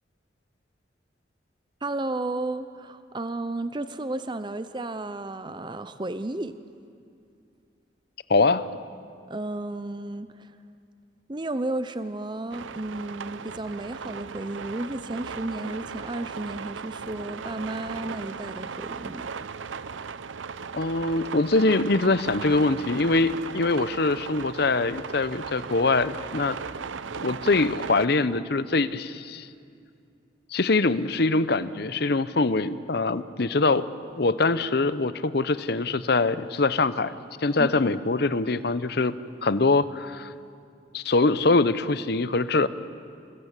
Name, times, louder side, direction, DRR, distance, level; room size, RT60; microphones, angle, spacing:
voice 1, 1.8-6.5 9.3-10.5 11.3-19.3 37.6-37.8, right 2 dB, 25° right, 11 dB, 0.6 m, -33 dB
voice 2, 8.3-8.7 20.7-26.6 27.1-29.5 30.5-33.9 34.2-37.1 37.4-39.2 39.4-40.3 40.9-42.7, left 3 dB, 55° left, 14 dB, 0.8 m, -23 dB
sound 1, 12.5-28.1, right 5 dB, 85° right, 0.6 m, -37 dB
27.5 x 21.0 x 8.3 m, 2.4 s
head